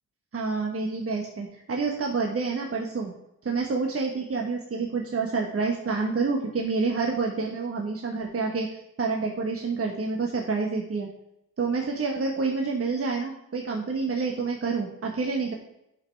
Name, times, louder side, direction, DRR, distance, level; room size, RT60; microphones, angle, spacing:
voice 1, 0.3-3.1 3.4-11.1 11.6-15.5, right 4 dB, 40° right, 1 dB, 1.2 m, -28 dB
8.2 x 5.4 x 4.5 m, 0.82 s
cardioid pair, 65°, 36 cm